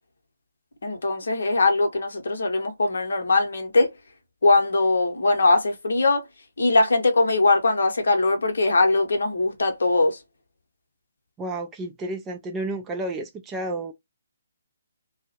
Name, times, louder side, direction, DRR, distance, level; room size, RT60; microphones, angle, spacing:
voice 1, 0.8-3.9 4.4-6.2 6.6-10.2, left 2 dB, 60° left, 0.7 m, -21 dB
voice 2, 11.4-13.9, right 2 dB, 15° right, 0.3 m, -31 dB
2.3 x 2.0 x 2.8 m
figure-of-eight pair, 135°, 0 cm